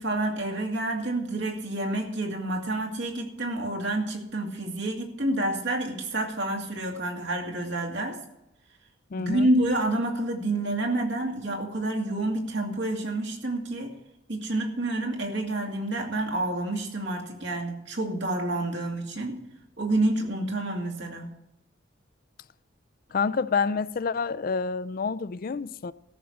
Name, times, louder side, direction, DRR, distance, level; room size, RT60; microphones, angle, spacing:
voice 1, 0.0-8.2 9.2-13.9 14.3-19.4 19.8-21.3, right 1 dB, 65° right, 2.4 m, -28 dB
voice 2, 9.1-9.5 23.1-25.9, left 5 dB, 50° left, 0.4 m, -28 dB
14.0 x 6.5 x 7.1 m
head